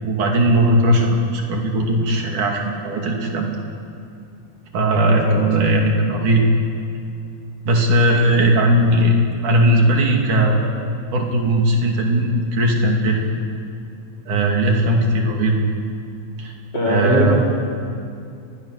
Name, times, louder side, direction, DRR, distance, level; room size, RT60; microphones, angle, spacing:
voice 1, 0.0-3.5 4.7-6.4 7.7-9.2 9.4-10.8 11.1-13.2 14.3-15.6 16.4-16.5 16.9-17.5, right 1 dB, 80° right, 1 dB, 4.3 m, -18 dB
voice 2, 5.0-5.6 8.3-8.4 16.7-17.5, left 1 dB, 35° left, -3 dB, 4.4 m, -21 dB
29.5 x 21.5 x 6.7 m, 2.4 s
omnidirectional pair, 3.5 m